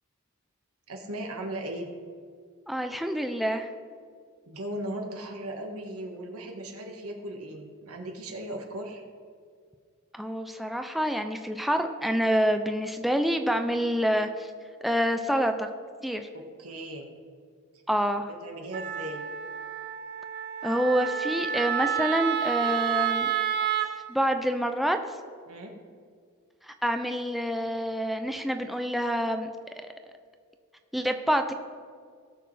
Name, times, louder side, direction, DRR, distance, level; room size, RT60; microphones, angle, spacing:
voice 1, 0.9-1.9 4.5-9.0 16.6-17.1 18.4-19.2 25.5-25.7, right 1 dB, 90° right, 2 dB, 1.6 m, -37 dB
voice 2, 2.7-3.7 10.1-14.5 14.8-15.7 16.0-16.3 17.9-18.3 20.6-23.3 24.1-25.0 26.7-29.5 29.8-29.9 30.9-31.5, equal, ahead, 6 dB, 0.4 m, -27 dB
Wind instrument woodwind instrument, 18.7-23.9, right 9 dB, 50° right, 0.7 m, -29 dB
18.5 x 6.5 x 3.3 m, 2.1 s
head